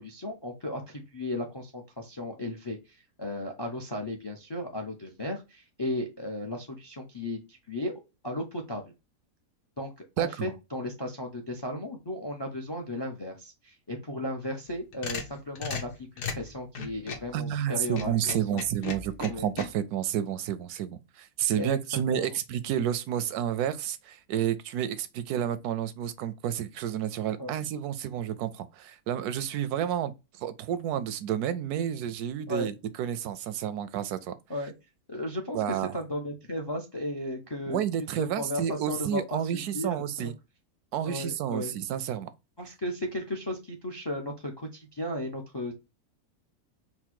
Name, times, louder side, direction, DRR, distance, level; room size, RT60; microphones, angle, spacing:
voice 1, 0.0-8.8 9.8-18.2 18.5-18.6 19.2-19.5 21.6-21.8 22.1-22.3 27.4-27.6 32.5-32.7 34.5-34.7 35.1-40.3 41.0-41.7 42.6-45.7, left 1 dB, 35° left, 0.4 m, -35 dB
voice 2, 10.2-10.5 17.3-30.1 30.4-34.3 35.5-35.9 37.7-40.3 40.9-42.3, right 10 dB, 85° right, 1.1 m, -30 dB
sound 1, 14.6-17.3 17.8-19.7, left 4 dB, 90° left, 1.5 m, -36 dB
4.3 x 2.1 x 4.4 m
omnidirectional pair, 1.6 m